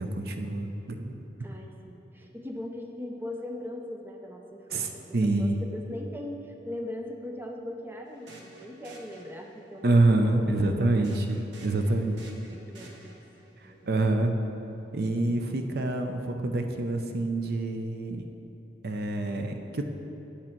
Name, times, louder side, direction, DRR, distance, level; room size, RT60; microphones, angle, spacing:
voice 1, 0.0-1.2 4.7-5.6 9.8-12.2 13.6-14.4 14.9-18.3 18.8-19.9, right 2 dB, 55° right, 5 dB, 0.6 m, -26 dB
voice 2, 1.4-9.9 10.2-11.1 11.9-12.0 12.5-13.2 13.6-14.0, left 1 dB, 10° right, 2 dB, 0.5 m, -40 dB
sound 1, 8.1-9.8 11.0-13.5, right 1 dB, 85° right, 1.2 m, -51 dB
8.6 x 8.6 x 4.5 m, 3.0 s
head